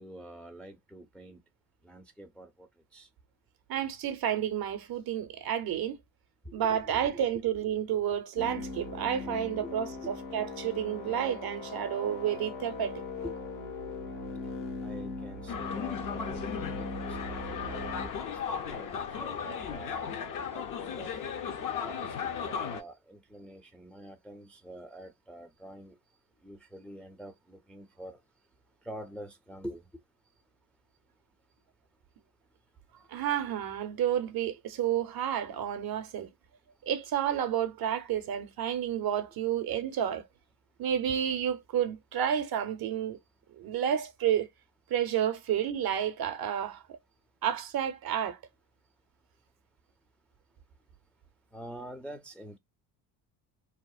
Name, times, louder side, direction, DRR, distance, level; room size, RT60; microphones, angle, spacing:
voice 1, 0.0-1.4 1.8-3.1 6.4-7.2 9.2-9.7 10.0-10.1 13.2-13.3 14.8-20.1 20.5-21.1 21.8-26.0 26.4-28.2 28.8-29.9 51.5-52.6, right 1 dB, ahead, 0.5 m, -46 dB
voice 2, 3.7-6.0 6.5-13.0 33.1-36.3 36.9-40.2 40.8-43.2 43.5-44.5 44.9-47.0 47.4-48.4, right 9 dB, 50° right, 0.7 m, -30 dB
sound 1, 8.4-18.1, left 3 dB, 75° left, 1.1 m, -40 dB
sound 2, 15.5-22.8, left 7 dB, 45° left, 0.6 m, -36 dB
2.8 x 2.0 x 2.3 m
supercardioid pair, 70°, 47 cm